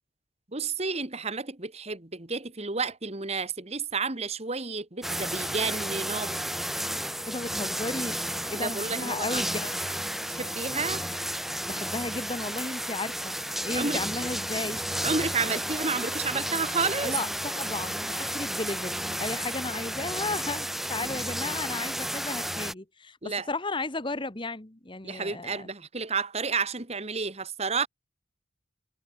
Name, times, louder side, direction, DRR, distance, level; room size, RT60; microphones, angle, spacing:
voice 1, 0.5-6.5 8.5-9.5 10.3-11.0 13.7-14.1 15.0-17.2 23.2-23.5 25.0-27.9, right 4 dB, 30° right, 1.6 m, -31 dB
sound 1, 5.0-22.7, equal, ahead, 2.0 m, -32 dB
voice 2, 7.3-8.2 8.5-9.8 11.7-14.9 17.0-25.7, left 2 dB, 25° left, 1.3 m, -34 dB
head